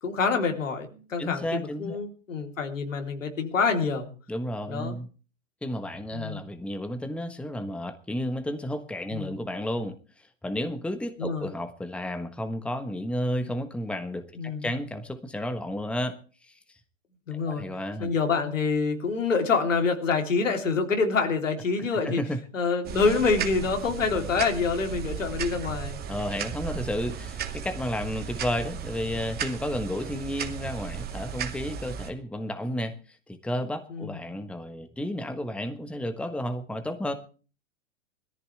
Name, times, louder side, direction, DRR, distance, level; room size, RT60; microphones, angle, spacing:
voice 1, 0.0-4.1 4.7-5.0 6.1-6.4 9.1-9.4 11.2-11.5 14.4-14.7 17.3-17.6 18.0-22.2 22.5-26.0 33.9-34.2, left 4 dB, 80° left, 4 dB, 3.5 m, -26 dB
voice 2, 1.2-2.0 4.3-5.1 5.6-16.8 17.3-18.1 22.0-22.4 26.1-37.1, left 1 dB, 5° left, 9 dB, 1.3 m, -32 dB
sound 1, 22.8-32.1, right 8 dB, 25° right, 2.2 m, -35 dB
21.0 x 14.0 x 3.4 m, 0.36 s
figure-of-eight pair, 105°, 38 cm